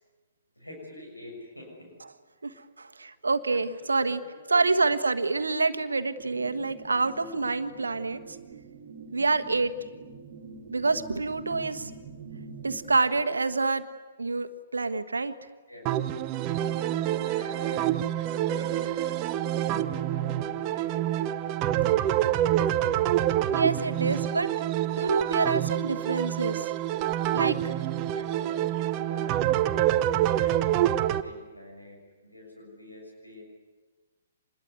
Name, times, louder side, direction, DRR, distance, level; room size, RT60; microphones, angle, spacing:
voice 1, 0.5-1.9 2.4-2.6 3.5-4.1 4.4-4.9 13.1-13.2 15.7-21.3 21.8-22.3 27.6-33.4, left 1 dB, 85° left, 0 dB, 6.7 m, -46 dB
voice 2, 2.4-4.2 4.5-8.4 9.1-9.7 10.7-11.9 12.6-13.9 14.2-15.3 23.5-24.5 25.0-26.7 27.3-27.6, right 3 dB, 70° right, 10 dB, 1.4 m, -27 dB
sound 1, 6.2-12.9, right 5 dB, 50° right, 2.1 m, -45 dB
sound 2, 15.9-31.2, right 12 dB, 30° right, 0.9 m, -27 dB
26.5 x 21.0 x 9.6 m, 1.3 s
figure-of-eight pair, 120°, 0 cm